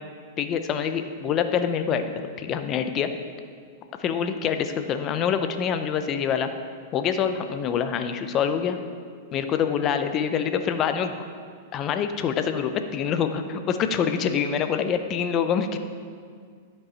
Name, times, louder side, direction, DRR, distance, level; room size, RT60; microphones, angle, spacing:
voice 1, 0.4-2.0 2.4-3.1 4.0-6.5 6.9-8.8 9.3-11.1 11.7-15.8, left 7 dB, 35° left, 8 dB, 0.7 m, -25 dB
12.0 x 5.4 x 4.3 m, 2.1 s
hypercardioid pair, 120°, 0 cm